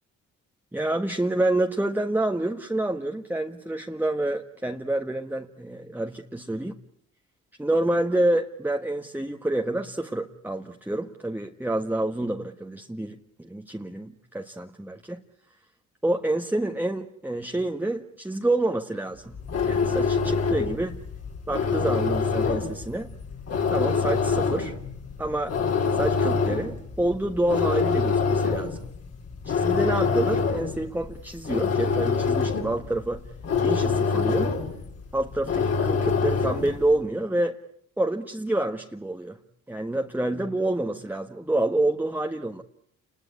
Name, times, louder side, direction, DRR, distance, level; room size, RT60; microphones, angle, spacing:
voice 1, 0.7-6.8 7.6-15.2 16.0-19.4 19.6-21.0 21.5-23.1 23.7-24.8 25.2-25.6 25.9-28.8 29.4-33.2 33.6-34.6 35.1-37.6 38.0-39.4 39.7-42.6, right 1 dB, 5° right, 3 dB, 1.5 m, -28 dB
sound 1, 19.3-36.8, left 5 dB, 55° left, 4.9 m, -26 dB
28.5 x 21.0 x 9.8 m, 0.70 s
cardioid pair, 90°, 30 cm